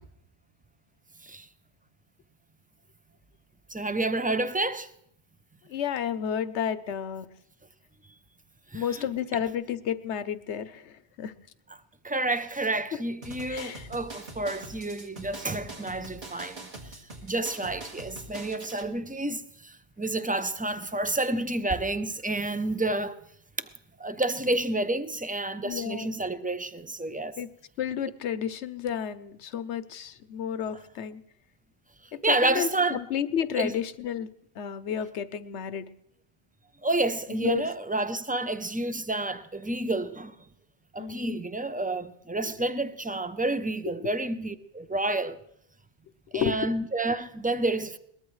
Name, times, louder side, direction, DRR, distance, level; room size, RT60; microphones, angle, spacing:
voice 1, 3.7-4.9 8.7-9.1 11.7-23.2 23.6-23.7 24.0-27.4 32.2-33.0 33.6-33.7 36.8-40.4 40.9-45.4 46.3-48.0, right 2 dB, 15° right, 0.4 m, -29 dB
voice 2, 5.7-7.3 8.7-11.3 12.9-13.0 13.5-13.9 25.6-26.1 27.4-27.5 27.8-31.2 32.1-34.3 34.6-35.9 37.3-37.6 41.0-41.4 44.0-44.1 46.3-46.7, left 8 dB, 80° left, 1.0 m, -31 dB
sound 1, 13.2-18.9, right 2 dB, 45° right, 1.9 m, -43 dB
22.0 x 19.5 x 3.2 m
omnidirectional pair, 1.1 m